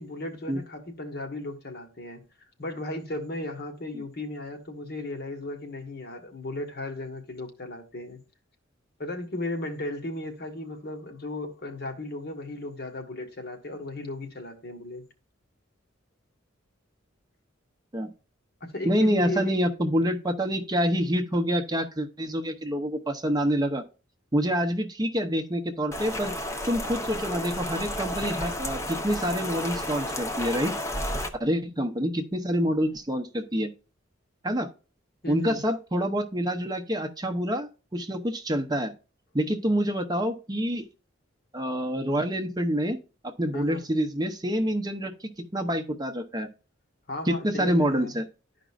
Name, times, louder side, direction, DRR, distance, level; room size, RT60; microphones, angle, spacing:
voice 1, 0.0-2.2 2.6-8.2 9.0-15.0 18.6-19.7 35.2-35.6 43.5-43.8 47.1-48.2, left 1 dB, 50° left, 1.4 m, -35 dB
voice 2, 18.8-23.8 24.3-26.3 26.7-30.7 31.4-33.7 34.4-34.7 35.3-38.9 39.3-40.8 41.5-43.0 43.4-46.5 47.3-48.2, equal, 20° right, 0.7 m, -27 dB
Rain, 25.9-31.3, left 1 dB, 15° left, 0.8 m, -32 dB
12.0 x 5.0 x 2.4 m
head